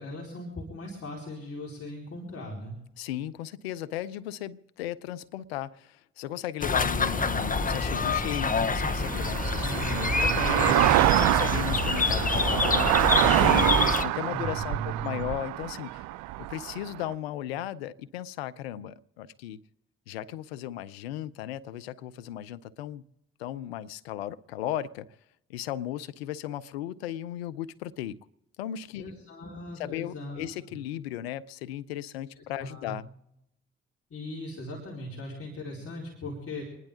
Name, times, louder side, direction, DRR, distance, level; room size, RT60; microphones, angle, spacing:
voice 1, 0.0-2.7 9.6-10.7 11.4-11.8 14.3-15.3 29.0-30.5 32.3-33.0 34.1-36.6, equal, 50° left, 4.4 m, -39 dB
voice 2, 3.0-16.1 16.4-19.6 20.1-23.0 23.4-25.1 25.5-28.2 28.6-29.0 29.8-33.0, left 12 dB, 90° left, 0.6 m, -36 dB
sound 1, 6.6-14.0, left 4 dB, 30° left, 1.0 m, -27 dB
sound 2, 7.1-17.1, right 17 dB, 70° right, 0.5 m, -26 dB
27.5 x 11.0 x 3.7 m
hypercardioid pair, 45°, 30 cm